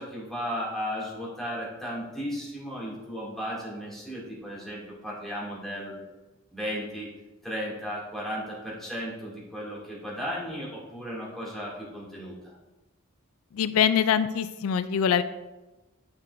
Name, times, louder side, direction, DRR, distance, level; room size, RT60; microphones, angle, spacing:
voice 1, 0.0-5.9 6.5-7.1 7.4-12.5, equal, ahead, -6 dB, 2.3 m, -35 dB
voice 2, 13.5-15.2, left 8 dB, 80° left, 13 dB, 0.3 m, -23 dB
9.6 x 6.0 x 2.5 m, 1.1 s
head